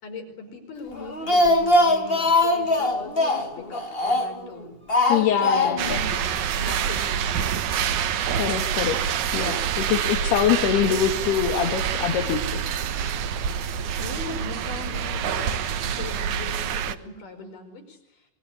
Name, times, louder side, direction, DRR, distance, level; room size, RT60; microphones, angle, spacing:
voice 1, 0.0-4.8 5.2-7.4 14.0-18.0, left 3 dB, 55° left, 5 dB, 6.6 m, -39 dB
Speech, 1.0-4.5 4.9-6.0 6.3-6.4 6.7-6.8, left 2 dB, 20° left, 1.5 m, -21 dB
voice 2, 5.1-6.0 8.4-9.0 9.3-12.6, left 9 dB, 80° left, 4 dB, 3.8 m, -24 dB
sound 1, 5.8-17.0, right 8 dB, 65° right, 2.2 m, -27 dB
25.5 x 23.5 x 9.8 m, 0.88 s
omnidirectional pair, 4.7 m